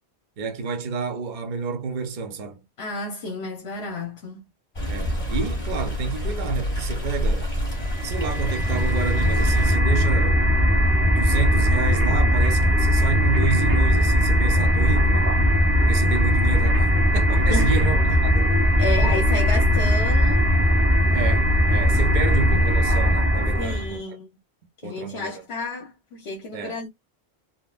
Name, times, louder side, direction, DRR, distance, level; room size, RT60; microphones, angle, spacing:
voice 1, 0.4-2.6 4.9-7.5 8.0-10.5 11.1-15.3 15.8-18.6 21.1-24.0 24.8-25.3 26.5-26.8, right 5 dB, 50° right, 0.8 m, -29 dB
voice 2, 2.8-4.5 12.2-12.4 17.5-17.8 18.8-20.5 23.6-24.3 24.8-26.9, left 2 dB, 75° left, 1.1 m, -31 dB
Stream, 4.7-9.8, equal, 35° left, 1.9 m, -28 dB
sound 1, 7.8-24.0, equal, 15° right, 0.5 m, -19 dB
3.7 x 2.0 x 2.4 m
omnidirectional pair, 1.1 m